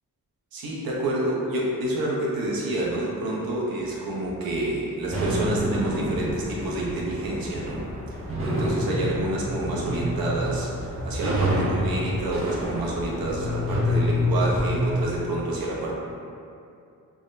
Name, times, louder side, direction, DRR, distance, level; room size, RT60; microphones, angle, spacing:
voice 1, 0.5-7.9 8.5-10.7 11.1-15.9, right 1 dB, 85° right, -4 dB, 0.6 m, -28 dB
sound 1, 5.1-15.1, equal, 40° right, 0.5 m, -27 dB
3.5 x 2.1 x 2.4 m, 2.5 s
wide cardioid pair, 160°, 34 cm